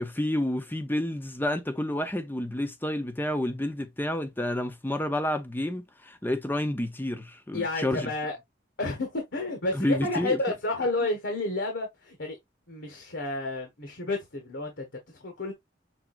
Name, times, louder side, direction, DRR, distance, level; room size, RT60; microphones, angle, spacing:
voice 1, 0.0-8.1 9.7-10.4, left 1 dB, 10° left, 0.6 m, -29 dB
voice 2, 7.5-8.4 8.8-12.4 12.7-14.9 15.2-15.5, left 2 dB, 75° left, 1.4 m, -30 dB
6.1 x 3.5 x 2.4 m
head